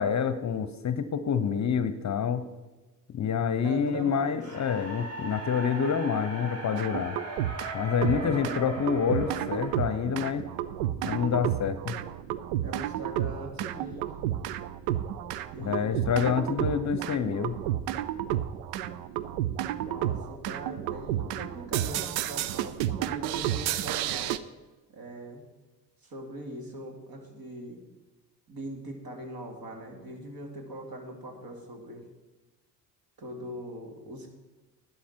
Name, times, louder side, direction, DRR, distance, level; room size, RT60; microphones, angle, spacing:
voice 1, 0.0-2.5 3.1-7.2 7.7-10.5 11.0-12.0 15.6-17.6, left 7 dB, 35° left, 12 dB, 0.8 m, -27 dB
voice 2, 3.6-4.4 12.6-14.1 15.5-16.2 19.8-24.4 24.9-25.4 26.0-27.8 28.5-32.0 33.2-34.3, right 1 dB, 50° right, 2 dB, 2.7 m, -41 dB
sound 1, 4.4-10.5, right 2 dB, 35° right, 3.9 m, -39 dB
sound 2, 6.8-7.7 8.0-24.4, right 12 dB, 75° right, 0.6 m, -31 dB
11.5 x 10.5 x 4.5 m, 1.2 s
hypercardioid pair, 50°, 46 cm